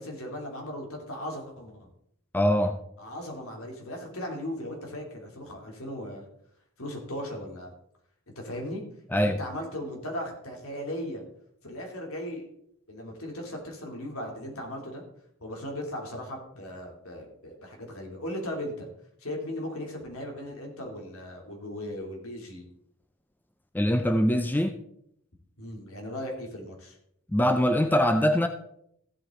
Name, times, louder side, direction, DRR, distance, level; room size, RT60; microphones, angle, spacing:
voice 1, 0.0-1.9 3.0-6.2 6.8-7.7 8.4-8.8 9.1-11.2 11.6-12.5 12.9-15.0 15.4-18.9 19.2-22.6 25.6-26.9, left 1 dB, 70° left, 1 dB, 2.9 m, -37 dB
voice 2, 2.3-2.8 9.1-9.4 23.7-24.8 27.3-28.5, equal, 10° left, 7 dB, 0.5 m, -23 dB
15.0 x 8.4 x 3.8 m, 0.72 s
head